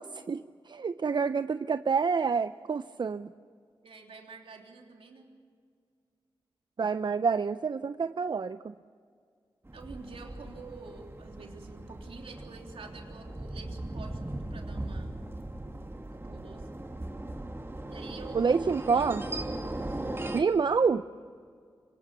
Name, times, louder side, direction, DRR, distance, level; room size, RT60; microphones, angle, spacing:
voice 1, 0.0-3.3 6.8-8.7 18.3-19.2 20.3-21.0, right 5 dB, 55° right, 12 dB, 0.5 m, -28 dB
voice 2, 3.8-5.3 9.7-15.1 15.9-16.7 17.9-19.2, right 4 dB, 85° right, 1 dB, 3.3 m, -47 dB
sound 1, 9.6-20.4, right 1 dB, 25° right, 2.6 m, -38 dB
25.0 x 19.0 x 7.4 m, 2.1 s
cardioid pair, 55°, 9 cm